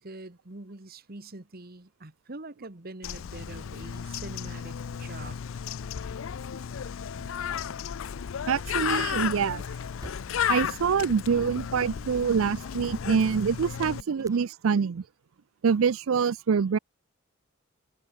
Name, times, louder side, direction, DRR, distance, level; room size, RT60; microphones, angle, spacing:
voice 1, 0.0-5.4, right 2 dB, 45° right, 1.6 m, -44 dB
Bird, 3.0-14.0, left 8 dB, 65° left, 0.4 m, -33 dB
voice 2, 8.5-9.6 10.5-15.0 15.6-16.8, right 6 dB, 70° right, 0.4 m, -25 dB
sound 1, 9.0-14.5, right 1 dB, 15° right, 3.1 m, -53 dB
head